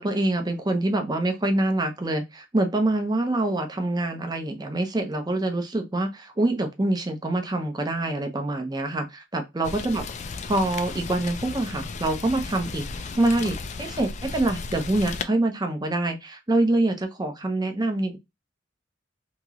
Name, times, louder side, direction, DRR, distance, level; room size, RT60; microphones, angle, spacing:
voice 1, 0.0-10.0 10.5-18.2, right 2 dB, 20° right, 0.7 m, -25 dB
Rain, 9.6-15.2, left 4 dB, 40° left, 0.4 m, -35 dB
2.9 x 2.9 x 2.4 m
head